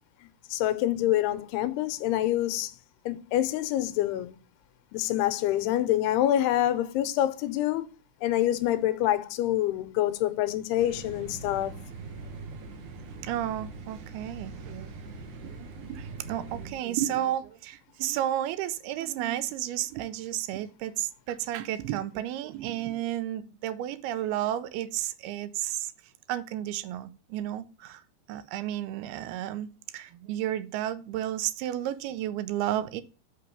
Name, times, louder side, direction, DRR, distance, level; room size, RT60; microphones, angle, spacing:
voice 1, 0.5-2.7 3.1-4.3 4.9-7.9 8.2-11.8, left 13 dB, 85° left, 2.7 m, -26 dB
sound 1, 10.8-16.7, right 3 dB, 60° right, 2.3 m, -42 dB
voice 2, 13.2-14.9 15.4-25.9 26.3-28.0 28.3-33.0, right 12 dB, 85° right, 2.5 m, -32 dB
6.0 x 5.9 x 6.7 m
omnidirectional pair, 4.7 m